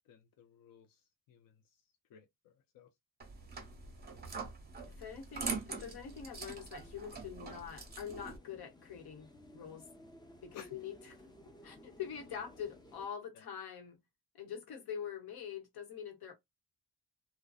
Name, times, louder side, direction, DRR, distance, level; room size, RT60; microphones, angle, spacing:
voice 1, 0.1-1.0 1.3-1.5 2.1-2.9 10.5-10.7, left 7 dB, 65° left, 0.5 m, -56 dB
sound 1, 3.2-8.4, right 4 dB, 25° right, 0.8 m, -43 dB
voice 2, 4.9-9.8 10.4-11.2 11.6-14.0 14.3-16.3, left 8 dB, 85° left, 1.0 m, -44 dB
sound 2, 5.7-13.1, left 1 dB, 10° left, 0.5 m, -58 dB
2.5 x 2.2 x 2.3 m
cardioid pair, 120°, 37 cm